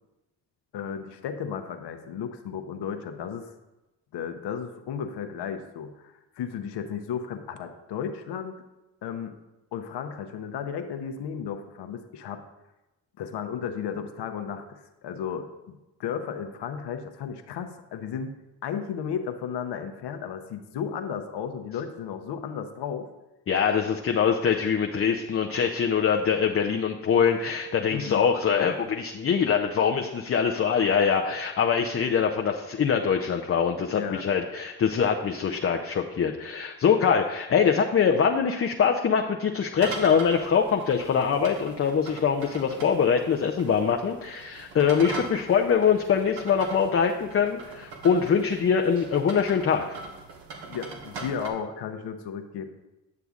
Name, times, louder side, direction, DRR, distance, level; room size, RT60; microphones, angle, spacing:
voice 1, 0.7-3.5 4.1-8.5 9.0-9.3 9.7-12.4 13.2-15.5 16.0-18.3 18.6-23.1 27.9-28.2 33.9-34.3 50.7-52.7, left 7 dB, 65° left, 7 dB, 0.8 m, -34 dB
voice 2, 23.5-49.8, left 6 dB, 30° left, 3 dB, 0.5 m, -23 dB
sound 1, 39.8-51.5, right 3 dB, 65° right, 1.3 m, -41 dB
9.4 x 6.7 x 2.4 m, 1.0 s
supercardioid pair, 60°, 45 cm